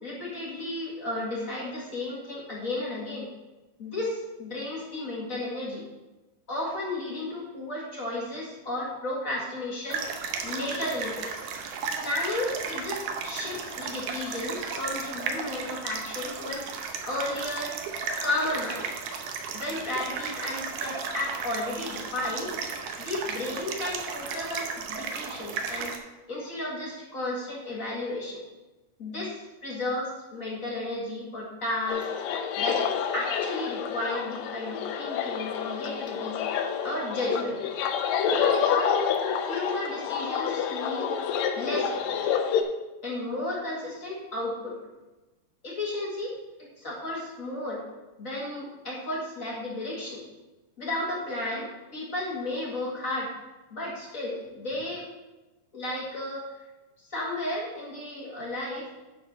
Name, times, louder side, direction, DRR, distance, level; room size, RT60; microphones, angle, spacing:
voice 1, 0.0-3.3 3.8-5.8 6.5-10.0 10.4-11.3 12.0-16.6 17.1-17.8 18.2-18.9 19.5-22.5 23.0-25.9 26.3-28.4 29.0-32.0 32.6-32.8 33.1-36.3 36.8-37.6 38.3-39.1 39.5-41.1 41.6-42.2 43.0-44.8 45.6-46.3 46.8-47.8 48.2-50.2 50.8-53.3 53.7-55.1 55.7-56.5 57.1-58.9, left 2 dB, 35° left, -4 dB, 1.5 m, -33 dB
sound 1, 9.9-26.0, right 5 dB, 75° right, 2.2 m, -35 dB
sound 2, 31.9-42.6, left 7 dB, 85° left, 1.5 m, -28 dB
9.9 x 4.4 x 5.6 m, 1.1 s
omnidirectional pair, 3.9 m